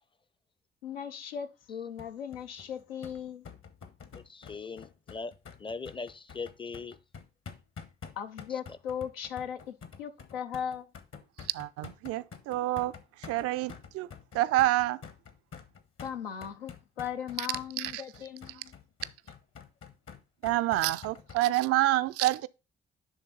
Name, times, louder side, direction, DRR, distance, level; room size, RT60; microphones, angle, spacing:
voice 1, 0.8-3.5 8.2-10.9 16.0-18.7, left 8 dB, 80° left, 0.7 m, -38 dB
sound 1, 2.0-21.4, left 6 dB, 45° left, 1.2 m, -48 dB
voice 2, 4.3-5.3 5.6-7.0, left 4 dB, 15° left, 0.6 m, -40 dB
voice 3, 11.5-12.9 13.2-14.1 14.3-15.0 17.4-17.5 17.8-18.0 20.4-22.5, right 16 dB, 50° right, 0.4 m, -28 dB
10.5 x 3.7 x 4.1 m
figure-of-eight pair, 40°, 30 cm